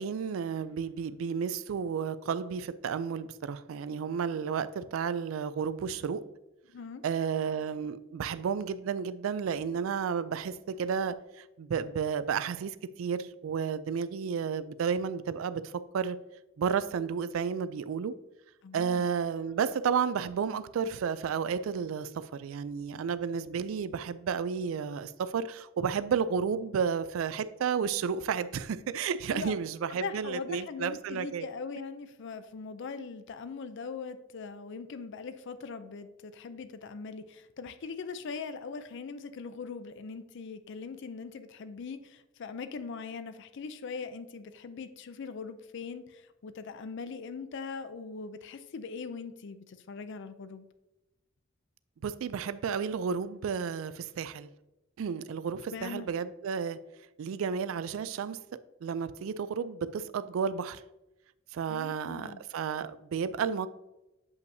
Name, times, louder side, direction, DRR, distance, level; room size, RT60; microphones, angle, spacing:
voice 1, 0.0-6.2 7.0-16.2 16.6-18.1 18.7-31.5 52.0-54.5 55.0-56.8 57.2-58.4 58.8-60.8 61.5-63.7, right 6 dB, 75° right, 0.3 m, -32 dB
voice 2, 6.7-7.0 18.6-19.1 29.3-29.5 29.9-50.7 55.7-56.1 61.7-62.4, left 5 dB, 60° left, 0.4 m, -41 dB
8.0 x 5.4 x 2.7 m
head